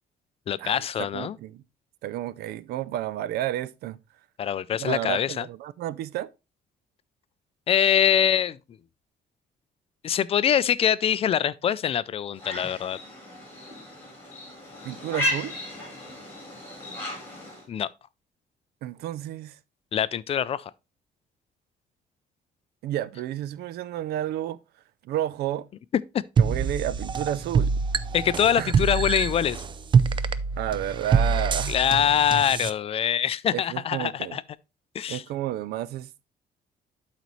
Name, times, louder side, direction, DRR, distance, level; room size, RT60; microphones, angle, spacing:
voice 1, 0.5-1.4 4.4-5.4 7.7-8.6 10.0-13.0 17.7-17.9 19.9-20.7 28.1-29.6 31.7-34.4 34.9-35.2, left 9 dB, 40° left, 0.3 m, -24 dB
voice 2, 1.1-1.6 2.0-4.0 4.8-6.3 14.8-15.5 18.8-19.6 22.8-24.6 25.0-25.7 26.4-27.8 28.6-28.9 30.6-31.8 33.5-34.4 35.1-36.2, right 12 dB, 90° right, 0.5 m, -31 dB
sound 1, 12.4-17.7, left 1 dB, 15° left, 3.9 m, -34 dB
sound 2, 26.4-32.7, right 5 dB, 30° right, 0.4 m, -25 dB
12.0 x 4.1 x 3.1 m
cardioid pair, 150°, 16 cm